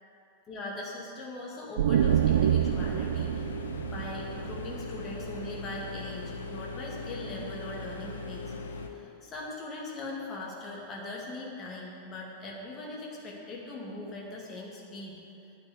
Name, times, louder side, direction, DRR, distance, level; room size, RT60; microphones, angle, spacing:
voice 1, 0.5-3.4 3.9-8.5 8.8-15.2, left 2 dB, 25° left, -3 dB, 2.2 m, -40 dB
sound 1, 1.8-5.4, right 10 dB, 60° right, 0.3 m, -27 dB
sound 2, 2.0-8.9, left 3 dB, 65° left, 0.8 m, -39 dB
9.6 x 5.9 x 8.2 m, 2.8 s
figure-of-eight pair, 90°, 0 cm